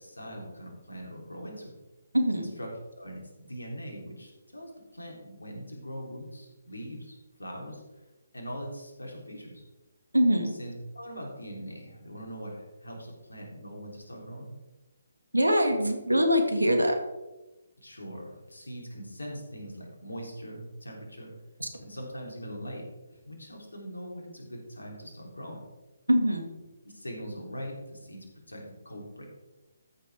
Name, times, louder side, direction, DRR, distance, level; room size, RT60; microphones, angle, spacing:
voice 1, 0.0-1.8 2.3-2.7 2.9-7.8 8.3-9.6 10.6-14.5 17.8-21.4 21.8-25.6 26.8-29.3, equal, 75° left, 0 dB, 3.1 m, -42 dB
voice 2, 2.1-2.5 10.1-10.5 15.3-17.0 21.6-21.7 26.1-26.4, equal, 80° right, 5 dB, 1.9 m, -23 dB
13.5 x 6.7 x 3.6 m, 1.1 s
figure-of-eight pair, 140°, 0 cm